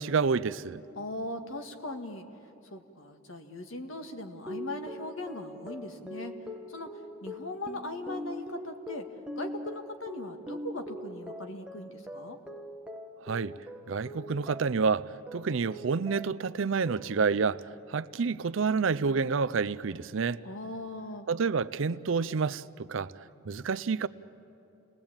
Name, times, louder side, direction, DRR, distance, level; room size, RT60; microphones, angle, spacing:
voice 1, 0.0-0.8 13.2-13.5 13.9-17.6 17.9-20.4 21.3-23.1 23.5-24.1, right 5 dB, 65° right, 0.5 m, -29 dB
voice 2, 1.0-2.3 2.6-6.3 6.7-9.1 9.4-12.4 20.4-21.3, left 1 dB, 65° left, 1.8 m, -39 dB
sound 1, 4.5-14.9 15.3-16.5 16.9-17.4, left 1 dB, 5° right, 0.9 m, -42 dB
29.0 x 19.5 x 8.8 m
head